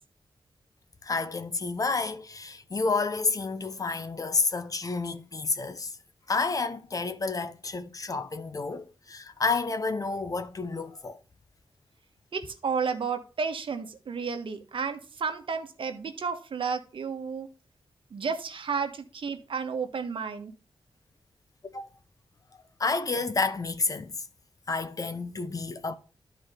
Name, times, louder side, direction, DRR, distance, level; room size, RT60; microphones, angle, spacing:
voice 1, 1.0-5.9 6.3-11.2 21.6-21.9 22.8-24.1 24.7-25.9, left 4 dB, 40° left, 0.8 m, -30 dB
voice 2, 12.3-17.5 18.1-20.5, right 5 dB, 65° right, 1.3 m, -32 dB
12.5 x 4.8 x 3.7 m
wide cardioid pair, 125°, 9 cm